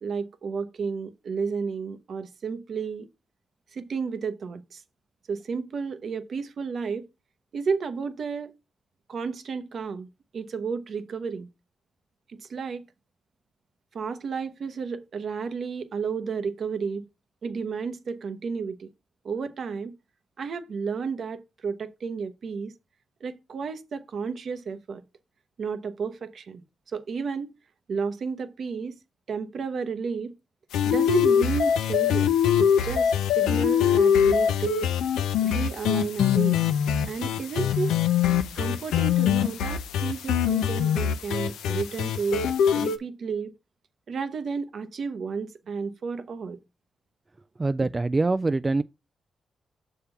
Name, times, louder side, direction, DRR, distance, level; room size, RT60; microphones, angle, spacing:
voice 1, 0.0-3.1 3.7-4.8 5.3-7.1 7.5-8.5 9.1-10.1 10.3-11.5 12.3-12.8 13.9-17.0 17.4-18.9 19.2-19.9 20.4-22.7 23.2-25.0 25.6-26.6 26.9-27.5 27.9-29.0 29.3-30.3 30.8-34.9 35.4-36.6 37.1-38.0 38.5-42.5 42.7-43.5 44.1-46.6, right 5 dB, 65° right, 0.9 m, -32 dB
sound 1, 30.7-43.0, left 8 dB, 85° left, 0.6 m, -23 dB
voice 2, 47.6-48.8, right 3 dB, 30° right, 0.3 m, -24 dB
6.7 x 3.6 x 5.6 m
supercardioid pair, 50°, 0 cm